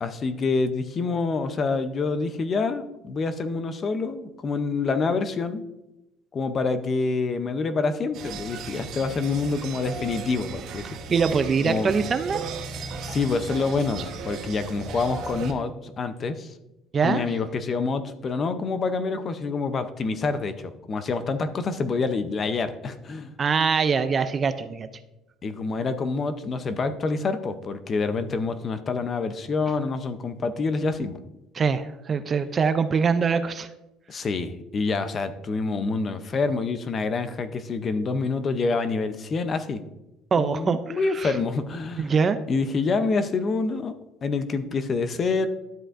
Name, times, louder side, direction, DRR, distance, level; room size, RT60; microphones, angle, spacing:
voice 1, 0.0-5.6 6.3-10.9 11.6-11.9 13.0-16.5 17.0-23.3 25.4-31.2 34.1-39.8 40.4-42.1 42.5-44.0 44.2-45.5, left 4 dB, 25° left, 11 dB, 0.5 m, -27 dB
sound 1, 8.1-15.5, right 5 dB, 50° right, 0.9 m, -36 dB
voice 2, 11.1-12.4 16.9-17.3 23.4-24.9 31.5-33.7 40.3-41.3 42.0-42.4, right 5 dB, 25° right, 11 dB, 0.4 m, -23 dB
12.0 x 7.8 x 2.5 m, 0.95 s
cardioid pair, 160°, 0 cm